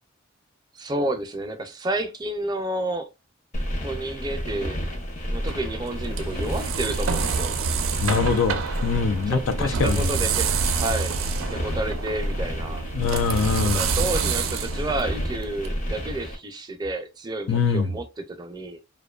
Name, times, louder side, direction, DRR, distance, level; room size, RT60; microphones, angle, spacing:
voice 1, 0.7-3.1 3.8-4.8 5.3-7.5 9.3-11.2 11.5-12.8 13.6-18.8, right 1 dB, 20° right, 0.4 m, -30 dB
sound 1, 3.5-16.4, equal, 35° left, 0.7 m, -31 dB
sound 2, 5.3-15.7, right 6 dB, 80° right, 0.4 m, -28 dB
voice 2, 8.0-10.2 12.9-13.9 17.5-18.0, left 5 dB, 85° left, 0.4 m, -23 dB
2.5 x 2.2 x 2.3 m
head